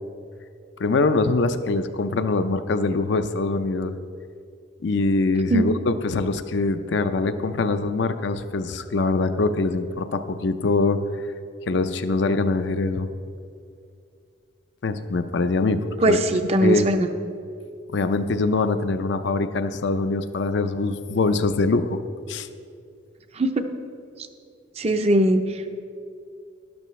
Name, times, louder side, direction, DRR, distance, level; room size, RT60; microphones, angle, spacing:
voice 1, 0.8-3.9 4.8-11.0 11.7-13.1 14.8-15.8 16.1-16.2 16.6-16.9 17.9-22.0 22.3-22.5, left 3 dB, 60° left, 9 dB, 0.5 m, -23 dB
voice 2, 16.0-17.1 23.3-23.7 24.8-25.7, right 1 dB, 30° right, 7 dB, 0.5 m, -20 dB
12.0 x 11.5 x 3.1 m, 2.4 s
head